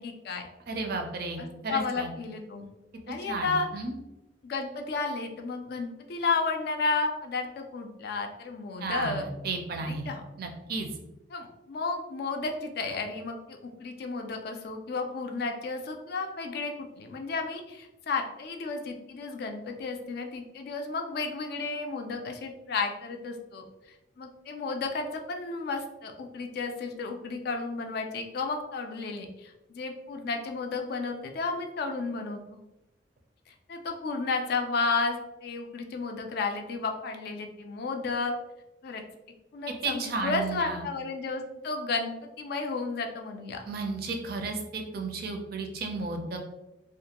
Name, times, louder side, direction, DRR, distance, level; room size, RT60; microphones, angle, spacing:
voice 1, 0.0-0.5 1.4-2.7 3.1-3.7 4.4-9.3 9.8-10.2 11.3-23.6 24.2-32.6 33.5-38.3 38.8-39.0 39.5-42.1 42.4-43.6, left 4 dB, 60° left, 4 dB, 0.3 m, -32 dB
voice 2, 0.7-2.1 3.1-4.0 8.8-10.1 10.4-10.9 39.8-40.8 43.7-46.4, right 3 dB, 55° right, 3 dB, 0.4 m, -33 dB
2.4 x 2.2 x 2.8 m, 0.98 s
head